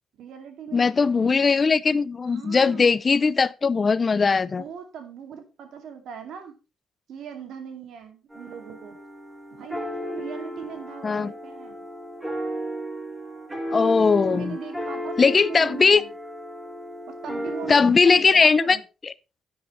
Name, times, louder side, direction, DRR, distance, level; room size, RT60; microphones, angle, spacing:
voice 1, 0.2-1.4 2.3-2.9 4.6-6.6 7.1-9.0 9.5-11.8 14.1-16.1 17.1-18.8, right 7 dB, 75° right, 2.3 m, -40 dB
voice 2, 0.7-4.6 11.0-11.3 13.7-14.6 15.2-16.0 17.7-18.8 19.0-19.1, left 5 dB, 35° left, 0.5 m, -19 dB
sound 1, 8.3-17.8, equal, 20° right, 5.5 m, -34 dB
9.9 x 8.6 x 3.1 m
cardioid pair, 90°, 0 cm